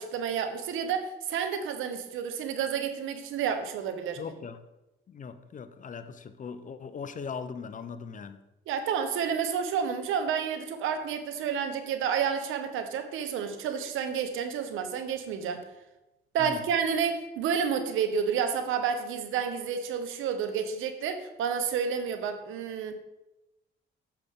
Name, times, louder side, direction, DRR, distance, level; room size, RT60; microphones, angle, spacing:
voice 1, 0.0-4.2 8.7-15.6 16.3-22.9, right 7 dB, 85° right, 1.0 m, -30 dB
voice 2, 4.2-4.6 5.1-8.4 16.4-16.6, left 6 dB, 40° left, 0.7 m, -39 dB
8.9 x 6.8 x 3.7 m
cardioid pair, 90°, 20 cm